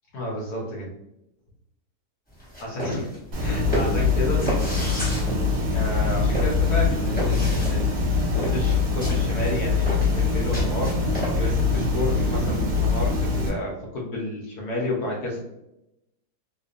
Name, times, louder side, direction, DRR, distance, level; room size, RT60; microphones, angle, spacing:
voice 1, 0.1-0.9 2.6-3.1 3.4-4.5 5.7-15.4, left 1 dB, 75° left, -3 dB, 1.2 m, -31 dB
sound 1, 2.3-11.6, equal, 10° left, 0.6 m, -32 dB
sound 2, 3.3-13.5, left 4 dB, 65° right, 1.1 m, -23 dB
2.9 x 2.1 x 2.4 m, 0.87 s
omnidirectional pair, 1.8 m